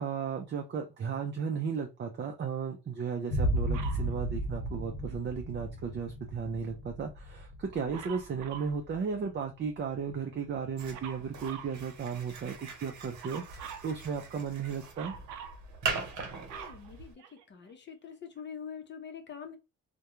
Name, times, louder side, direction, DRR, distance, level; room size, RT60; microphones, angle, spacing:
voice 1, 0.0-15.2, right 6 dB, 35° right, 0.5 m, -35 dB
sound 1, 3.3-10.7, right 1 dB, 80° left, 0.8 m, -35 dB
Dog, 3.7-4.1 7.9-8.8 10.9-11.8 13.2-13.9 14.9-15.6 16.1-17.6 18.4-18.5, right 8 dB, 90° right, 0.5 m, -45 dB
sound 2, 10.8-17.1, right 5 dB, 75° right, 0.8 m, -41 dB
voice 2, 16.5-17.1 17.5-19.6, left 7 dB, 40° left, 0.7 m, -44 dB
2.3 x 2.2 x 3.0 m
cardioid pair, 90°, 30 cm